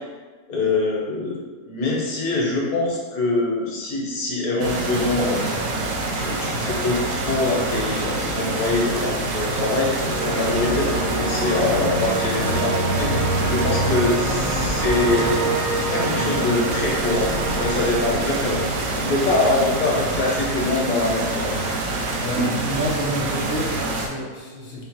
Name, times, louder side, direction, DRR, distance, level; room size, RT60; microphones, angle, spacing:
voice 1, 0.5-1.4 1.6-5.4 6.1-15.3 15.7-18.6 19.0-21.6, left 2 dB, 90° left, -3 dB, 1.4 m, -24 dB
sound 1, 4.6-24.1, right 2 dB, 75° right, 1.0 m, -26 dB
sound 2, 10.0-20.0, right 1 dB, 50° right, 1.3 m, -27 dB
voice 2, 15.8-16.5 20.9-21.1 22.1-24.8, equal, 50° left, -5 dB, 1.0 m, -29 dB
5.5 x 2.2 x 2.8 m, 1.4 s
omnidirectional pair, 1.5 m